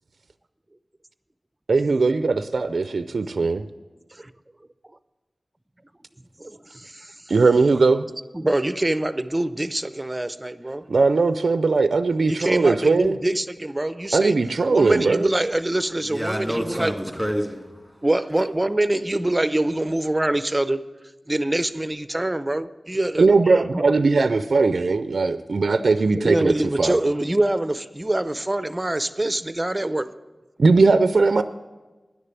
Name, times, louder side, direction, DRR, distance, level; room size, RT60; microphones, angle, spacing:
voice 1, 1.7-3.6 7.3-8.1 10.9-13.2 14.1-15.3 23.2-27.0 30.6-31.4, right 3 dB, 75° right, 0.3 m, -19 dB
voice 2, 6.4-7.3 8.3-10.9 12.2-14.4 14.7-16.9 18.0-20.8 21.3-23.9 26.2-30.1, right 1 dB, 20° right, 0.5 m, -25 dB
voice 3, 16.0-18.0, equal, ahead, 2.1 m, -28 dB
10.0 x 6.6 x 9.0 m
wide cardioid pair, 65°, 0 cm